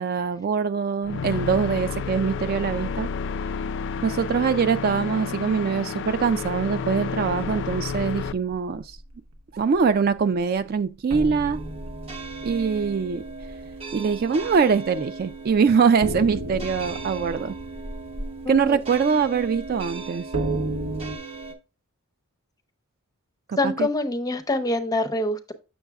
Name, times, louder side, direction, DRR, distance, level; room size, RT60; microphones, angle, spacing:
voice 1, 0.0-3.1 4.0-9.0 9.5-11.6 12.4-13.2 13.9-17.5 18.5-20.2 23.5-23.9, right 6 dB, 40° right, 0.3 m, -23 dB
sound 1, 1.0-8.3, left 5 dB, 55° left, 0.3 m, -30 dB
sound 2, 7.2-9.2 9.6-9.8 10.2-10.3 11.1-15.0 15.3-15.4 16.0-21.2, right 1 dB, 75° right, 0.9 m, -34 dB
sound 3, 11.5-21.5, right 3 dB, 25° right, 0.8 m, -37 dB
voice 2, 18.4-18.8 23.6-25.5, left 2 dB, 15° left, 0.6 m, -25 dB
7.9 x 6.2 x 2.3 m
head